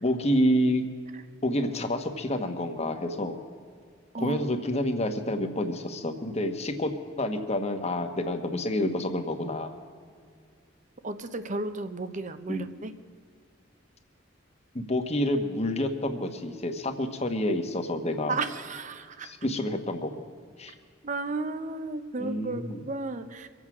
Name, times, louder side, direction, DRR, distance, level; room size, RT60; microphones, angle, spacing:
voice 1, 0.0-0.9 1.4-3.4 4.2-9.7 12.5-12.7 14.7-18.4 19.2-20.2 20.6-20.7 22.2-22.8, left 1 dB, 35° left, 6 dB, 1.2 m, -28 dB
voice 2, 11.0-12.9 18.3-19.3 21.0-23.5, right 3 dB, 40° right, 10 dB, 0.9 m, -33 dB
24.5 x 8.1 x 6.0 m, 2.1 s
head